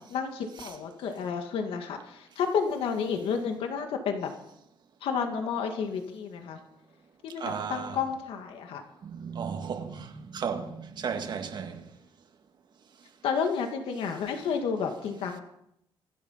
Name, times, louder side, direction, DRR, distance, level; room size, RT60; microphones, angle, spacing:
voice 1, 0.1-4.3 5.0-6.6 7.2-8.8 13.2-15.4, left 6 dB, 80° left, 2.0 m, -31 dB
voice 2, 7.4-8.0 9.0-11.8, right 6 dB, 55° right, 1.9 m, -35 dB
25.5 x 8.9 x 5.7 m
cardioid pair, 100°, 9 cm